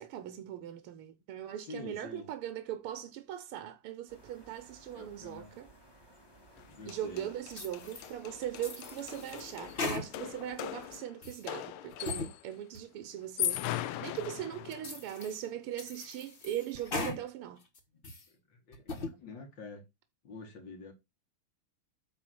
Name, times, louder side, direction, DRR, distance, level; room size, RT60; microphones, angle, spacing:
voice 1, 0.0-5.7 6.9-17.6, right 11 dB, 80° right, 1.7 m, -40 dB
voice 2, 1.6-2.3 4.9-5.6 6.7-7.3 18.3-19.8 20.2-20.9, left 3 dB, 60° left, 2.0 m, -47 dB
sound 1, 4.1-11.0, right 1 dB, 10° left, 1.6 m, -58 dB
sound 2, 6.6-6.7 6.9-12.5 13.2-15.0, left 13 dB, 80° left, 1.5 m, -39 dB
sound 3, 7.5-8.1 8.6-10.4 10.8-11.5 11.9-12.3 12.7-12.8 13.4-13.5 14.2-14.3 14.7-15.4 15.8-17.2 17.6-18.3 18.7-19.1, left 3 dB, 30° left, 1.1 m, -40 dB
8.9 x 3.5 x 6.1 m
omnidirectional pair, 2.4 m